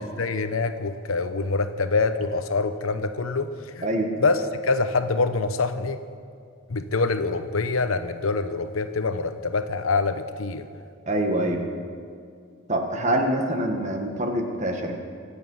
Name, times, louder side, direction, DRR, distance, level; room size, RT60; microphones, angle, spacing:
voice 1, 0.2-3.9 4.2-6.0 6.7-10.6, left 3 dB, 85° left, 10 dB, 0.9 m, -25 dB
voice 2, 11.1-11.6 12.7-15.0, right 1 dB, 35° right, 3 dB, 1.6 m, -25 dB
25.0 x 8.6 x 5.5 m, 2.3 s
head